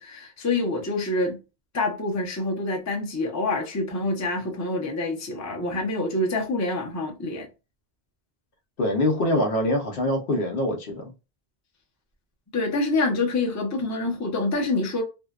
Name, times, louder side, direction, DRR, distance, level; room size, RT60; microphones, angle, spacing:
voice 1, 0.0-1.4 1.7-7.5 12.5-15.0, left 2 dB, 20° left, 0.5 m, -26 dB
voice 2, 8.8-11.1, left 1 dB, 65° left, 0.8 m, -24 dB
2.6 x 2.0 x 2.3 m
omnidirectional pair, 1.1 m